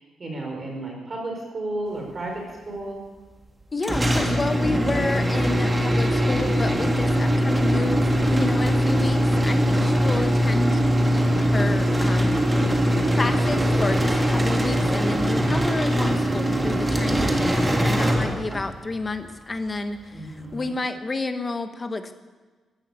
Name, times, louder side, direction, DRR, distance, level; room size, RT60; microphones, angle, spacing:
voice 1, 0.2-3.0 9.6-9.9 20.1-20.7, right 2 dB, 30° right, 0 dB, 5.1 m, -33 dB
voice 2, 3.7-10.8 11.1-12.4 13.1-22.1, left 3 dB, 25° left, 8 dB, 1.1 m, -30 dB
sound 1, 3.8-18.8, equal, 10° right, 1.6 m, -21 dB
15.0 x 11.5 x 8.4 m, 1.3 s
wide cardioid pair, 160°, 0 cm